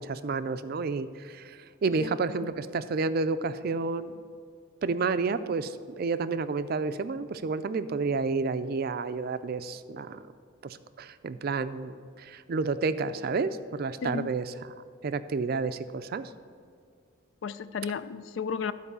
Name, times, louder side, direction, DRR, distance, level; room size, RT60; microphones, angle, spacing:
voice 1, 0.0-4.1 4.8-10.2 10.6-14.5 15.0-16.3, right 4 dB, 50° right, 0.4 m, -30 dB
voice 2, 14.0-14.3 17.4-18.7, left 6 dB, 65° left, 0.4 m, -33 dB
12.5 x 4.6 x 6.8 m
head